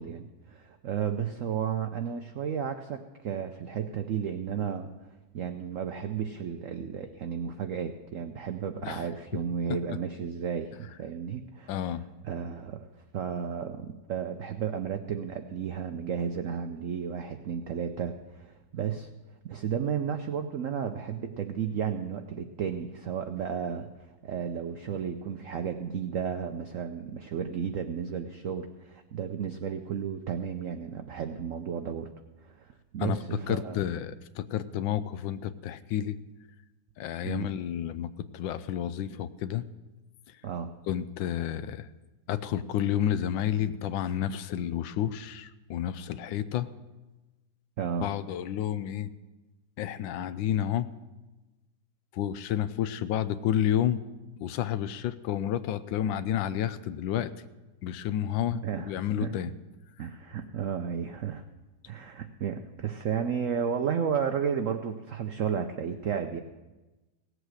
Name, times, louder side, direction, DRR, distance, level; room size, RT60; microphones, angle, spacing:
voice 1, 0.0-12.0 12.2-12.9 13.1-19.1 19.4-23.9 24.2-32.1 32.4-33.8 37.2-37.5 40.4-40.7 47.8-48.1 58.5-59.4 60.0-61.4 61.9-66.4, right 7 dB, 85° right, 7 dB, 0.7 m, -33 dB
voice 2, 11.7-12.0 33.0-33.2 33.5-36.2 37.0-39.7 40.9-41.9 42.3-46.7 48.0-49.1 49.8-50.9 52.1-54.0 54.4-57.3 57.8-59.5, left 10 dB, 75° left, 13 dB, 1.3 m, -30 dB
17.0 x 8.1 x 6.3 m, 1.1 s
omnidirectional pair, 2.2 m